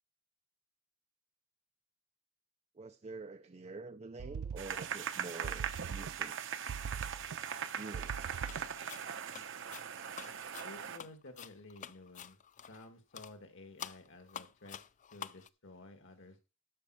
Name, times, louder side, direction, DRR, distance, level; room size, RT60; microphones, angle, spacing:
voice 1, 2.8-6.8 7.7-8.4, right 3 dB, 30° right, 0.5 m, -48 dB
sound 1, 4.2-5.1 5.4-6.4 6.7-7.6 7.9-8.9, right 6 dB, 85° right, 0.4 m, -42 dB
sound 2, 4.6-11.0, right 8 dB, 60° right, 0.9 m, -40 dB
sound 3, 8.5-8.6 8.9-12.9 13.1-13.3 13.8-15.5, left 9 dB, 35° left, 0.4 m, -48 dB
voice 2, 10.6-12.4 12.7-14.8 15.1-16.4, left 2 dB, 60° left, 1.9 m, -53 dB
12.0 x 5.2 x 6.2 m
head